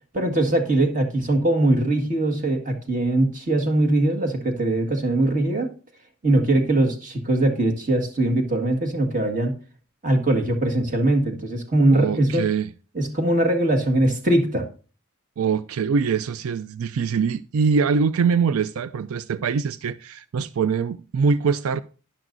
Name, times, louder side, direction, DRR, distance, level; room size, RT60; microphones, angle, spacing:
voice 1, 0.1-5.7 6.2-9.5 10.0-12.4 12.9-14.7, right 1 dB, 40° right, 1.7 m, -21 dB
voice 2, 11.9-12.7 15.4-21.8, right 5 dB, 85° right, 0.4 m, -23 dB
12.0 x 10.5 x 2.6 m
head